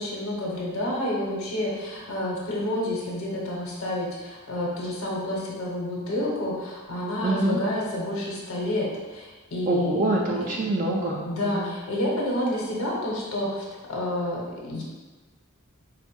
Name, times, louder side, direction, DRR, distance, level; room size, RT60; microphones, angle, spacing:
voice 1, 0.0-10.0 10.4-10.5 11.2-13.6 13.9-14.8, left 1 dB, 75° left, -3 dB, 0.9 m, -29 dB
voice 2, 7.2-7.6 9.7-11.8, right 2 dB, 40° right, -2 dB, 0.4 m, -25 dB
4.3 x 2.0 x 4.4 m, 1.3 s
head